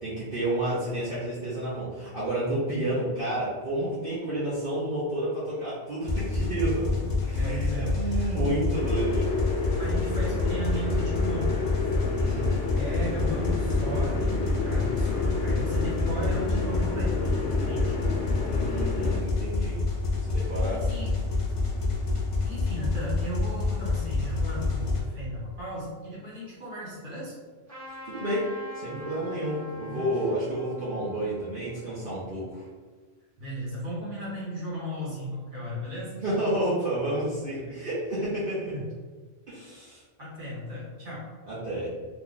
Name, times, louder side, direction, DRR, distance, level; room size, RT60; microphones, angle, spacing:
voice 1, 0.0-9.3 12.2-12.6 18.6-19.8 20.2-20.9 28.0-28.5 28.7-32.6 36.2-38.7 39.5-40.0 41.5-41.9, right 1 dB, 55° right, -10 dB, 0.9 m, -30 dB
sound 1, 6.1-25.0, left 3 dB, 45° left, 0.4 m, -28 dB
voice 2, 7.0-8.4 9.8-18.0 20.4-21.2 22.4-27.3 29.8-30.1 33.4-36.2 38.7-38.8 40.2-41.3, right 1 dB, 90° right, -6 dB, 1.6 m, -36 dB
sound 2, 8.7-19.2, left 3 dB, 75° left, 1.0 m, -31 dB
Trumpet, 27.7-32.7, left 1 dB, 15° right, 1.0 m, -45 dB
2.9 x 2.2 x 3.8 m, 1.4 s
omnidirectional pair, 1.2 m